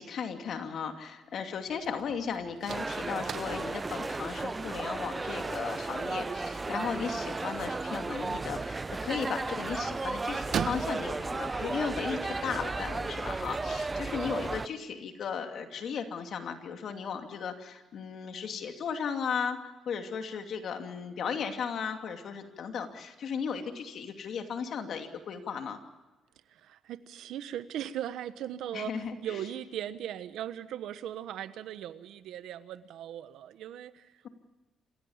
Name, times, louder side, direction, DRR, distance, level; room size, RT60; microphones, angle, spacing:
voice 1, 0.0-25.8 28.7-29.4, left 6 dB, 65° left, 5 dB, 2.6 m, -36 dB
sound 1, 1.7-14.0, right 8 dB, 60° right, 1.3 m, -44 dB
sound 2, 2.7-14.7, right 3 dB, 25° right, 0.7 m, -34 dB
voice 2, 26.5-34.1, right 11 dB, 80° right, 13 dB, 1.1 m, -39 dB
27.5 x 16.5 x 7.2 m, 1.1 s
cardioid pair, 95°, 0 cm